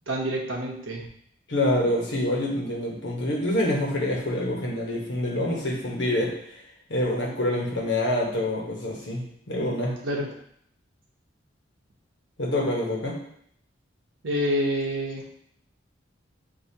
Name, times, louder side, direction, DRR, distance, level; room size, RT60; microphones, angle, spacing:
voice 1, 0.1-1.1 10.0-10.3 14.2-15.2, equal, 85° right, -1 dB, 0.9 m, -27 dB
voice 2, 1.5-6.3 6.9-10.0 12.4-13.2, left 1 dB, 70° left, -1 dB, 1.2 m, -26 dB
6.6 x 2.7 x 2.8 m, 0.67 s
head